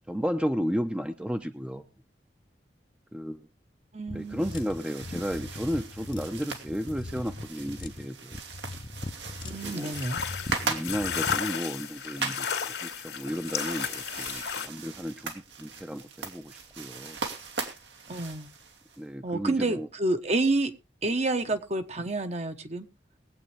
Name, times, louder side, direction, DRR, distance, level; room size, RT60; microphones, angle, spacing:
voice 1, 0.1-1.8 3.1-3.5 4.1-8.4 9.5-9.9 10.6-17.2 19.0-19.9, equal, 5° right, 6 dB, 0.8 m, -33 dB
voice 2, 3.9-4.5 9.4-10.2 18.1-18.5 19.2-20.7 21.0-22.9, right 2 dB, 40° right, 8 dB, 1.1 m, -29 dB
sound 1, 4.1-11.4, left 2 dB, 25° left, 0.8 m, -40 dB
sound 2, 4.2-19.0, right 4 dB, 85° right, 2.6 m, -39 dB
sound 3, 9.6-14.7, left 7 dB, 75° left, 2.3 m, -33 dB
22.0 x 8.4 x 3.3 m, 0.27 s
head